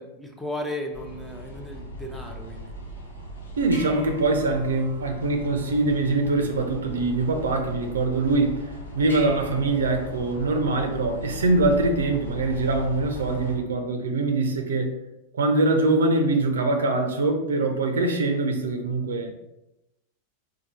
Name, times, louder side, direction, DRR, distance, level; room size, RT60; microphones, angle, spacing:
voice 1, 0.0-2.7, left 1 dB, 5° left, 1 dB, 0.7 m, -35 dB
sound 1, 0.9-13.6, equal, 65° left, 0.8 m, -39 dB
metal bell, 3.3-13.2, left 2 dB, 85° left, 1.2 m, -44 dB
voice 2, 3.6-15.0 15.3-19.4, right 2 dB, 65° right, 5 dB, 0.6 m, -23 dB
4.6 x 2.3 x 4.2 m, 0.91 s
figure-of-eight pair, 90°, 0 cm